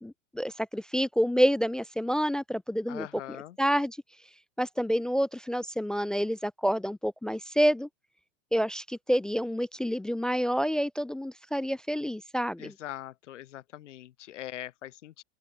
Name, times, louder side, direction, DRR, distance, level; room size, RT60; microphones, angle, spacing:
voice 1, 0.0-3.1 3.6-4.0 4.6-7.9 8.5-12.7, equal, ahead, 0.3 m, -28 dB
voice 2, 2.9-3.6 12.6-15.2, left 13 dB, 85° left, 6.0 m, -42 dB
open air
supercardioid pair, 155°, 35 cm